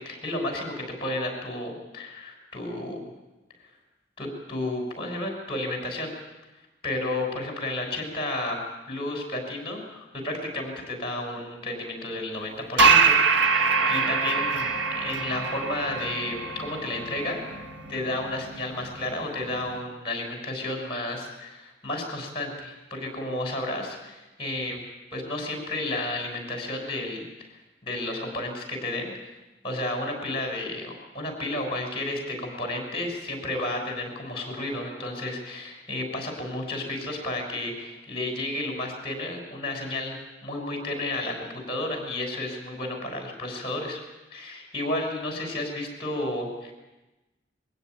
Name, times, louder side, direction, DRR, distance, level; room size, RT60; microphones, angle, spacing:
voice 1, 0.0-3.0 4.2-6.1 6.8-8.6 8.9-17.4 17.9-24.8 25.1-27.2 27.8-29.1 29.6-44.0 44.3-46.7, left 1 dB, 30° left, 2 dB, 6.3 m, -32 dB
sound 1, 12.8-19.8, right 5 dB, 80° right, 1.7 m, -24 dB
22.5 x 16.0 x 9.4 m, 1.1 s
head